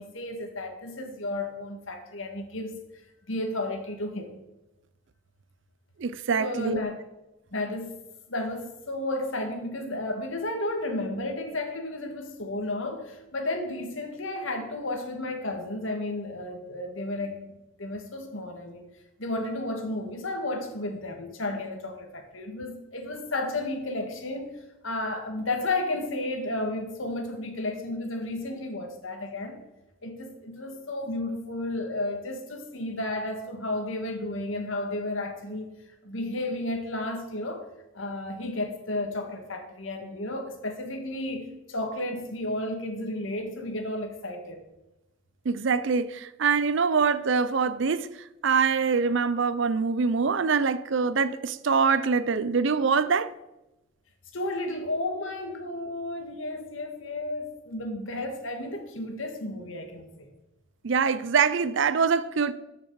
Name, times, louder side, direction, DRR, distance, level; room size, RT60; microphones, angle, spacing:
voice 1, 0.0-2.7 3.3-4.3 6.4-7.0 7.5-7.9 8.3-17.4 17.8-18.8 19.2-29.6 30.0-35.6 36.0-37.6 37.9-44.6 54.3-60.3, left 2 dB, 70° left, 1.7 m, -32 dB
voice 2, 6.0-6.8 45.5-48.1 48.4-53.3 60.8-62.5, right 5 dB, 60° right, 0.5 m, -24 dB
13.5 x 6.0 x 4.7 m
head